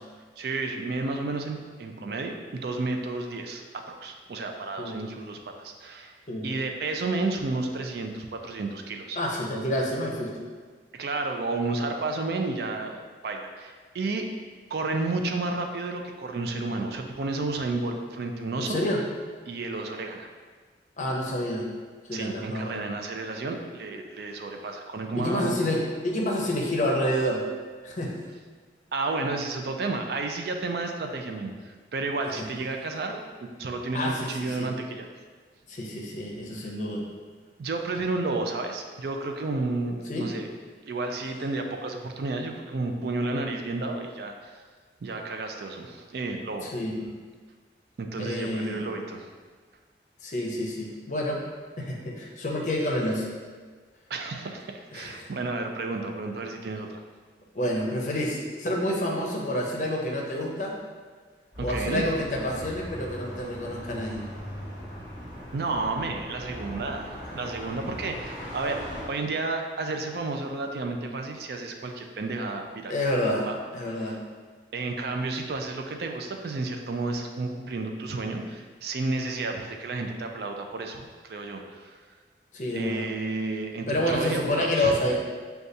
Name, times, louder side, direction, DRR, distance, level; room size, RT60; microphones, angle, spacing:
voice 1, 0.4-6.1 6.4-9.2 10.9-14.3 14.7-18.8 19.5-20.3 22.1-25.5 28.9-35.1 37.6-40.5 40.8-44.6 45.0-46.7 48.0-49.3 54.1-57.0 61.6-62.0 65.5-72.9 73.4-73.6 73.9-74.2 74.7-82.0 82.7-85.0, right 3 dB, 60° right, 4 dB, 0.4 m, -31 dB
voice 2, 9.2-10.3 18.6-19.0 21.0-21.6 22.1-22.9 25.2-27.4 27.8-28.2 32.4-32.5 33.9-34.7 35.7-37.0 40.1-40.3 46.6-46.9 48.2-48.9 50.2-51.4 51.8-53.3 54.9-55.3 57.5-60.8 61.6-64.3 72.9-73.5 73.7-74.2 82.5-83.1 83.9-85.2, left 1 dB, 45° left, -1 dB, 0.6 m, -28 dB
sound 1, 61.5-69.0, equal, 5° right, 1.4 m, -39 dB
6.4 x 2.3 x 2.6 m, 1.5 s
head